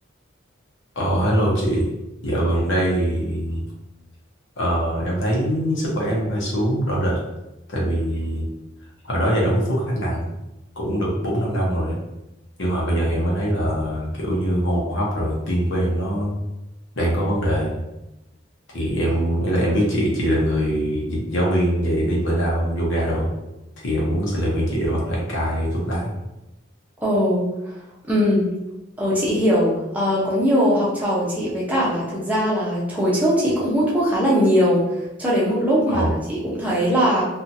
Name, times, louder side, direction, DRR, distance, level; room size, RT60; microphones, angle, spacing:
voice 1, 1.0-1.8 2.2-3.6 4.6-7.2 7.7-8.5 9.0-10.3 10.8-12.0 12.6-16.3 17.0-17.8 18.7-23.3 23.8-26.1 35.9-36.1, equal, 70° left, -4 dB, 0.8 m, -22 dB
voice 2, 27.0-27.8 28.1-28.5 29.0-34.9 35.2-37.2, equal, 10° right, -7 dB, 0.7 m, -20 dB
2.8 x 2.4 x 2.7 m, 0.94 s
head